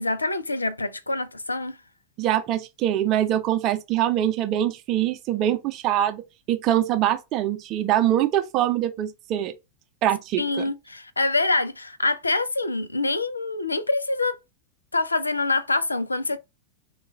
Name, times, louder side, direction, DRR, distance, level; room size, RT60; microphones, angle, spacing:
voice 1, 0.0-1.8 10.4-14.4 14.9-16.4, left 2 dB, 80° left, 0.4 m, -25 dB
voice 2, 2.2-6.2 6.5-9.5 10.0-10.6, right 12 dB, 35° right, 0.6 m, -23 dB
4.1 x 2.3 x 3.4 m
figure-of-eight pair, 90°, 0 cm